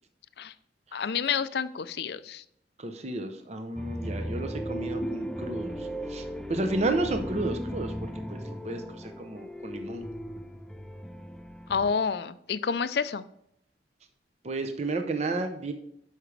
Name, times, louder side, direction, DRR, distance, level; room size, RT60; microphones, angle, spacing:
voice 1, 0.9-2.4 11.7-13.2, left 6 dB, 65° left, 14 dB, 0.4 m, -29 dB
voice 2, 2.8-6.2 6.5-10.0 14.4-15.7, right 2 dB, 40° right, 6 dB, 0.7 m, -32 dB
sound 1, 3.8-11.9, equal, 5° left, 0.4 m, -36 dB
11.5 x 4.9 x 3.3 m, 0.73 s
head